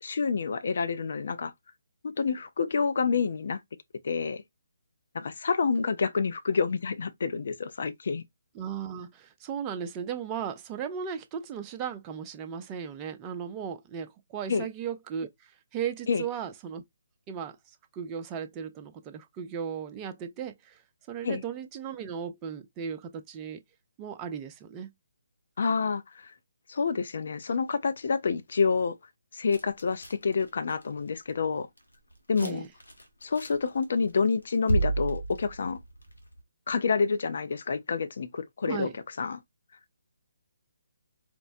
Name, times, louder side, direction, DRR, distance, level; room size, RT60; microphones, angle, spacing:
voice 1, 0.0-1.5 2.0-3.6 4.0-4.4 5.1-8.2 14.5-14.7 16.1-16.2 21.2-21.4 25.6-26.3 26.7-29.0 29.3-31.7 32.3-32.6 33.2-35.8 36.7-38.9 39.2-39.4, left 5 dB, 60° left, 0.5 m, -28 dB
voice 2, 8.5-16.8 17.3-17.6 17.9-20.8 21.1-23.6 24.0-24.9 32.4-32.7 38.7-39.0, right 7 dB, 20° right, 0.5 m, -36 dB
sound 1, 29.5-31.0 31.3-31.4 31.8-32.5 32.8-34.1 34.3-36.4, right 2 dB, 90° left, 1.1 m, -31 dB
4.3 x 2.0 x 2.6 m
figure-of-eight pair, 145°, 0 cm